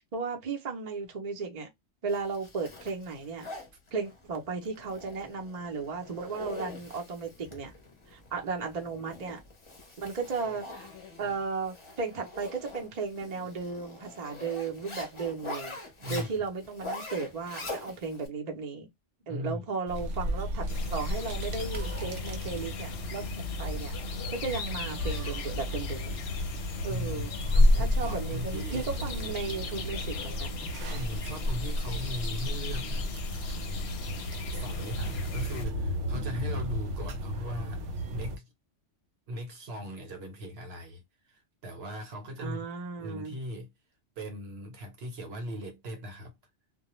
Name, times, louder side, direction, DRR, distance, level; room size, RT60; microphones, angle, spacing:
voice 1, 0.0-1.7 2.0-3.5 3.9-7.7 8.1-9.4 10.0-10.9 11.2-15.8 16.1-18.9 19.3-23.2 23.6-23.9 24.3-26.2 26.8-27.3 27.8-30.7 42.4-43.4, right 4 dB, 45° right, 0.6 m, -35 dB
Zipper (clothing), 2.1-18.3, left 2 dB, 30° left, 0.7 m, -44 dB
voice 2, 16.0-16.5 19.3-19.6 26.9-28.9 30.9-33.1 34.5-38.5 39.3-41.0 41.3-42.6 43.0-43.7 44.2-46.3, equal, 60° right, 1.0 m, -39 dB
sound 1, 19.9-38.4, left 1 dB, 75° right, 1.0 m, -31 dB
sound 2, 20.7-35.7, left 6 dB, 65° left, 0.8 m, -41 dB
2.2 x 2.1 x 3.0 m
omnidirectional pair, 1.2 m